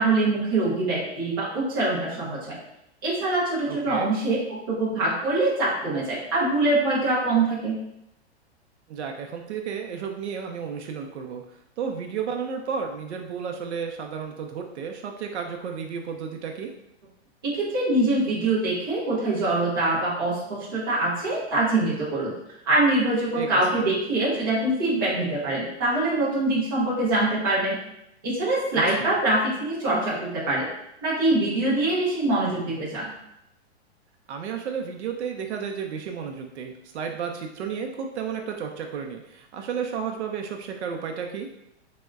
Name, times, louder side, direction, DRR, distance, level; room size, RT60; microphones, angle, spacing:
voice 1, 0.0-2.6 3.0-7.8 17.4-22.3 22.7-27.8 28.2-30.7 31.0-33.1, right 2 dB, 20° right, -8 dB, 0.4 m, -24 dB
voice 2, 3.7-4.1 8.9-16.7 23.3-23.5 28.9-29.1 34.3-41.5, right 6 dB, 80° right, 3 dB, 0.5 m, -32 dB
3.4 x 2.1 x 2.3 m, 0.80 s
hypercardioid pair, 175°, 33 cm